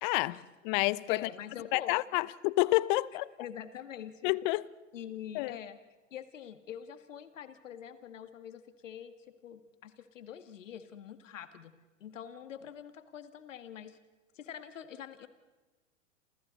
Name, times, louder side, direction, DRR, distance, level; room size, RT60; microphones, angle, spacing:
voice 1, 0.0-1.3 1.7-3.3 4.2-4.7 5.3-5.5, left 21 dB, 40° left, 0.8 m, -29 dB
voice 2, 1.1-2.3 3.4-4.3 4.9-5.8 6.1-11.7 12.0-14.0 14.3-15.3, left 9 dB, 70° left, 2.2 m, -45 dB
29.0 x 28.0 x 4.1 m
hypercardioid pair, 110°, 40 cm